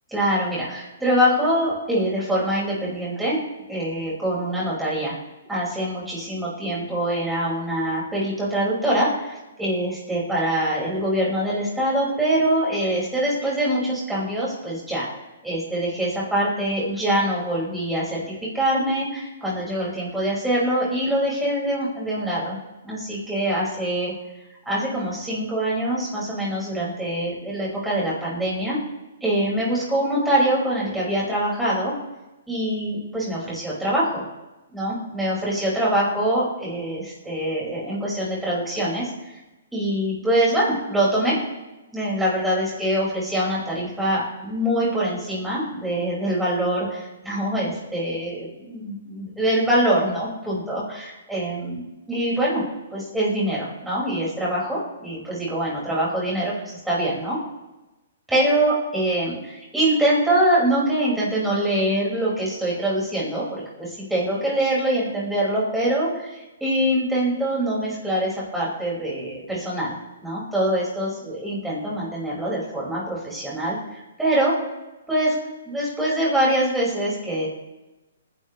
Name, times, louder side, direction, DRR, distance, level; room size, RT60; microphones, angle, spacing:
voice 1, 0.1-3.4 3.7-5.2 5.5-15.1 15.4-22.6 22.8-24.1 24.7-28.8 29.2-31.9 32.5-34.2 34.7-39.1 39.7-41.4 41.9-52.6 52.9-57.4 58.3-69.9 70.2-74.5 75.1-75.3 75.7-77.5, right 1 dB, 5° right, -7 dB, 5.6 m, -24 dB
27.0 x 11.0 x 3.3 m, 1.1 s
hypercardioid pair, 155°, 0 cm